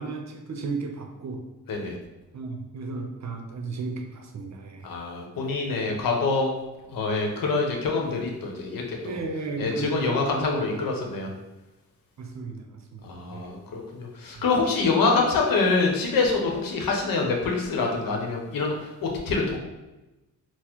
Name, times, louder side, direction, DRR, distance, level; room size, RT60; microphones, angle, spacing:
voice 1, 0.0-1.4 2.3-4.9 9.0-10.8 12.2-13.5, right 3 dB, 50° right, 4 dB, 0.7 m, -34 dB
voice 2, 4.8-6.5 6.9-9.2 9.6-11.3 13.0-19.6, left 3 dB, 70° left, 1 dB, 0.8 m, -25 dB
4.0 x 2.0 x 3.0 m, 1.0 s
cardioid pair, 65°, 35 cm